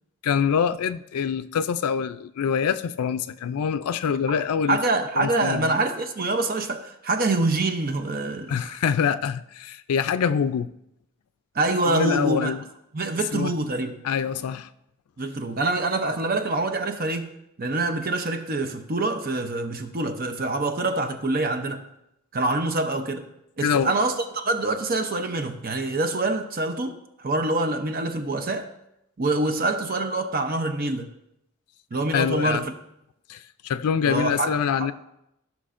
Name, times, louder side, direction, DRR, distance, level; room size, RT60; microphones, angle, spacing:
voice 1, 0.2-4.8 5.2-5.7 8.5-10.7 11.9-12.6 13.3-13.5 14.0-14.7 23.6-23.9 32.1-32.6 33.3-33.4 33.6-34.9, left 7 dB, 90° left, 12 dB, 0.4 m, -25 dB
voice 2, 4.7-8.8 11.5-12.6 12.9-14.0 15.2-17.3 17.6-21.8 22.3-23.3 23.6-28.7 29.2-31.1 31.9-32.7 34.1-34.9, right 2 dB, 40° right, 6 dB, 0.6 m, -25 dB
15.5 x 5.9 x 2.5 m, 0.82 s
head